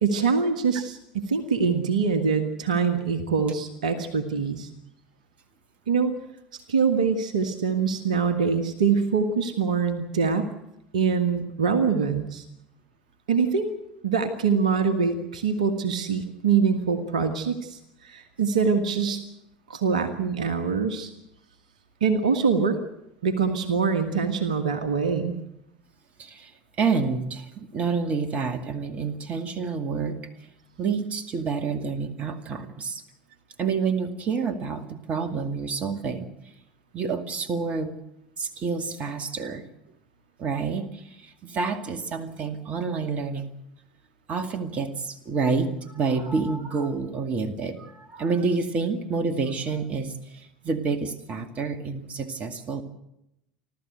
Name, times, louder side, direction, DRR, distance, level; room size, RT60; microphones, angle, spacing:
voice 1, 0.0-4.7 5.9-6.1 6.7-10.5 10.9-12.4 13.3-13.7 14.0-19.2 19.7-21.1 22.0-22.8 23.2-25.4, right 5 dB, 70° right, 8 dB, 1.5 m, -24 dB
voice 2, 26.2-26.5 26.8-30.2 30.8-33.0 33.6-36.3 36.9-38.0 38.4-39.6 40.4-43.5 44.3-52.8, right 4 dB, 35° right, 8 dB, 2.2 m, -28 dB
30.0 x 13.0 x 7.9 m, 0.84 s
figure-of-eight pair, 70°, 4 cm